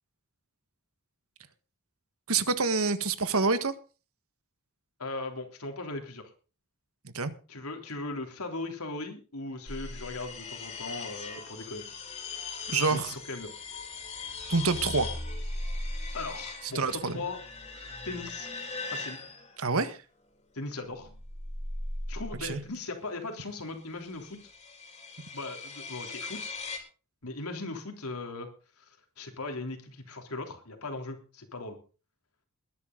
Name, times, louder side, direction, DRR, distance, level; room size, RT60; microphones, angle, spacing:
voice 1, 2.3-3.7 7.0-7.3 12.7-13.1 14.5-15.1 16.6-17.2 19.6-20.0 22.4-22.6, right 4 dB, 75° right, 11 dB, 1.6 m, -27 dB
voice 2, 5.0-6.3 7.5-11.8 12.9-13.5 16.1-17.4 18.0-18.5 18.9-19.2 20.5-21.1 22.1-24.4 25.3-26.5 27.2-28.5 28.8-28.9 29.2-31.8, left 2 dB, 80° left, 4 dB, 3.5 m, -38 dB
sound 1, 9.7-19.8 20.8-22.7 23.8-26.8, left 3 dB, 30° left, 3.8 m, -39 dB
21.0 x 11.0 x 3.9 m, 0.36 s
head